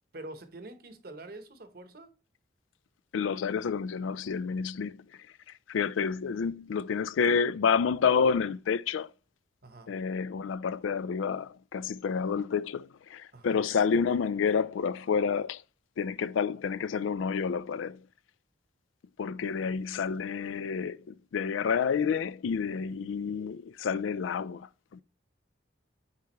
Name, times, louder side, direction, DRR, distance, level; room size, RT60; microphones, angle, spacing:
voice 1, 0.1-2.1 9.6-9.9 13.3-13.6, right 2 dB, 50° right, 0.9 m, -45 dB
voice 2, 3.1-5.0 5.7-9.1 9.9-15.6 16.0-18.0 19.2-25.0, left 6 dB, 80° left, 0.4 m, -29 dB
9.5 x 3.5 x 3.0 m
head